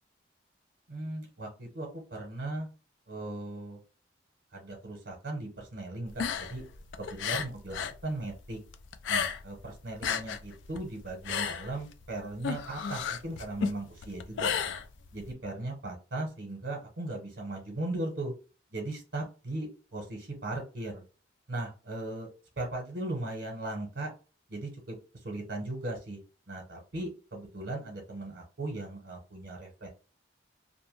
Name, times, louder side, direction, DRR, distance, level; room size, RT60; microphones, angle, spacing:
voice 1, 0.9-2.7 3.1-3.8 4.5-6.6 7.0-8.6 9.1-14.7 15.1-18.3 18.7-21.0 21.5-22.3 22.6-24.1 24.5-26.2 26.5-29.9, right 2 dB, 65° right, 0 dB, 0.8 m, -38 dB
sound 1, 6.1-8.0 8.3-9.6 9.9-15.3, left 7 dB, 80° left, 0.3 m, -33 dB
2.6 x 2.1 x 3.0 m, 0.35 s
head